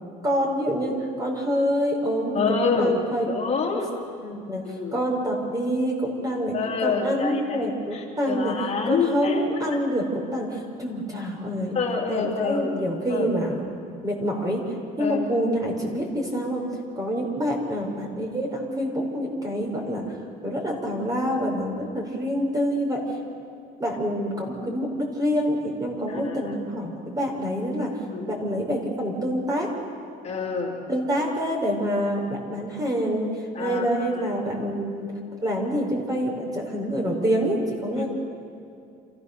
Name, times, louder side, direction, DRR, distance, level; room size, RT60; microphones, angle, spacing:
voice 1, 0.2-3.2 4.2-4.6 4.9-8.5 8.8-11.7 12.1-13.6 14.0-14.6 15.0-16.6 16.9-20.0 20.4-23.0 23.8-27.9 28.3-29.7 30.9-33.3 33.6-35.1 35.4-38.1, equal, 20° right, 0 dB, 5.0 m, -26 dB
voice 2, 2.3-2.9 3.3-3.9 4.6-5.0 6.5-9.6 11.7-12.7 13.1-13.3 15.0-15.2 26.1-26.5 27.8-28.2 30.2-30.7 33.5-34.3 37.9-38.0, left 5 dB, 40° left, -2 dB, 3.0 m, -27 dB
28.0 x 15.0 x 6.8 m, 2.4 s
cardioid pair, 110°, 17 cm